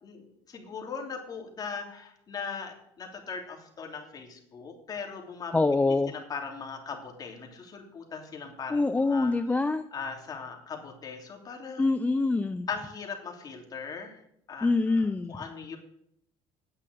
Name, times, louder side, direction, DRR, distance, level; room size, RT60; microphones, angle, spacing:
voice 1, 0.0-5.5 6.1-9.3 9.9-11.8 12.7-14.2 14.5-14.7 15.3-15.8, left 5 dB, 35° left, 2 dB, 3.1 m, -39 dB
voice 2, 5.5-6.1 8.7-9.8 11.8-12.7 14.6-15.4, left 3 dB, 15° left, 9 dB, 0.5 m, -25 dB
10.0 x 8.1 x 8.5 m, 0.73 s
cardioid pair, 115°, 11 cm